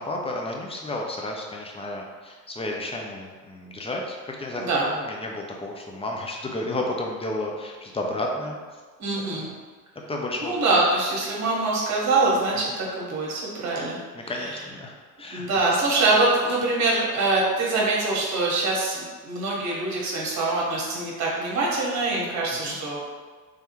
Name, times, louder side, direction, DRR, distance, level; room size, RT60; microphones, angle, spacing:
voice 1, 0.0-8.6 9.3-9.5 10.1-10.6 12.7-12.8 14.1-15.5 22.5-22.8, left 1 dB, 15° left, 0 dB, 0.5 m, -32 dB
voice 2, 9.0-9.5 10.4-14.3 15.3-23.0, right 2 dB, 35° right, -4 dB, 1.5 m, -24 dB
3.4 x 3.3 x 3.0 m, 1.4 s
figure-of-eight pair, 65°, 47 cm